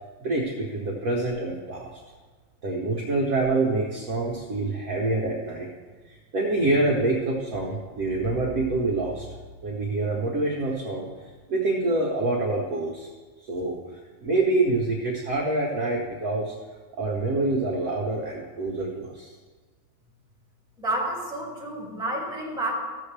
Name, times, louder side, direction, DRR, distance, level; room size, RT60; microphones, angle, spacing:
voice 1, 0.2-2.0 2.6-5.7 6.0-9.3 9.6-13.1 13.4-16.5 17.0-19.4, right 2 dB, 50° right, -2 dB, 1.3 m, -26 dB
voice 2, 20.8-22.7, right 1 dB, ahead, -4 dB, 2.3 m, -30 dB
14.5 x 7.1 x 3.3 m, 1.4 s
omnidirectional pair, 2.2 m